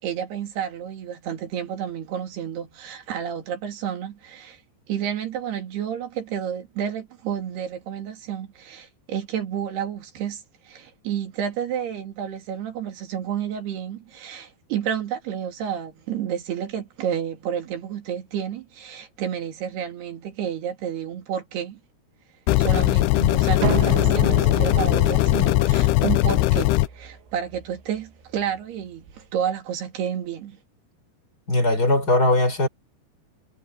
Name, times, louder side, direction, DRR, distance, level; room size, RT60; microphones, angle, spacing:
voice 1, 0.0-4.6 4.9-21.8 22.6-30.6, right 9 dB, 65° right, 4.3 m, -30 dB
sound 1, 22.5-26.9, left 17 dB, 80° left, 2.4 m, -19 dB
sound 2, 23.6-29.2, right 8 dB, 80° right, 5.3 m, -32 dB
voice 2, 31.5-32.7, left 2 dB, 20° left, 4.5 m, -19 dB
omnidirectional pair, 5.1 m